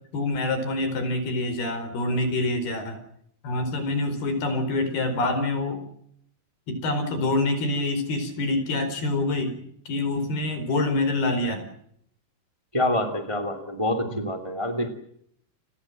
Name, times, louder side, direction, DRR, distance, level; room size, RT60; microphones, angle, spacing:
voice 1, 0.1-3.0 3.4-5.8 6.7-9.5 9.9-11.7 14.0-14.2, left 2 dB, 70° left, 9 dB, 6.4 m, -26 dB
voice 2, 12.7-14.9, left 1 dB, 10° right, 9 dB, 1.8 m, -26 dB
29.5 x 20.5 x 7.5 m, 0.72 s
omnidirectional pair, 4.6 m